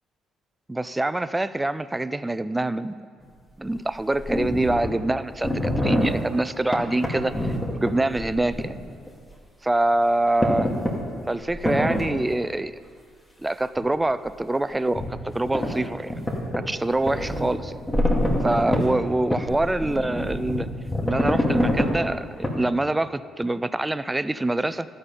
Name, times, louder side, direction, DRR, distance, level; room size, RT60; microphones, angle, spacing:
voice 1, 0.7-3.1 3.6-8.7 9.6-10.7 11.3-12.7 13.4-16.3 16.5-17.7 18.4-20.7 21.0-24.9, right 2 dB, 15° right, 14 dB, 0.4 m, -25 dB
sound 1, 3.2-3.3 4.1-4.9 5.3-6.1 6.7-8.7 9.1-9.2 10.4-10.9 11.5-12.1 13.8-13.9 15.0-15.1 15.5-15.7 16.1-16.6 17.0-18.8 19.3-22.0 22.4-22.5, left 1 dB, 20° left, 2.3 m, -25 dB
13.0 x 5.4 x 7.6 m, 2.1 s
hypercardioid pair, 45°, 0 cm